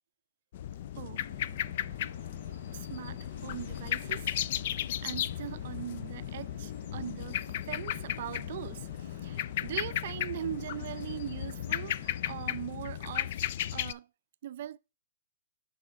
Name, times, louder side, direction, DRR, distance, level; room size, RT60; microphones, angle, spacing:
sound 1, 0.5-13.9, left 11 dB, 50° left, 0.3 m, -35 dB
voice 1, 1.0-1.3 2.7-4.4 5.0-14.1 14.4-14.8, right 11 dB, 55° right, 0.5 m, -41 dB
sound 2, 1.2-12.3, left 3 dB, 70° left, 4.2 m, -51 dB
6.7 x 4.9 x 4.7 m
hypercardioid pair, 140°, 0 cm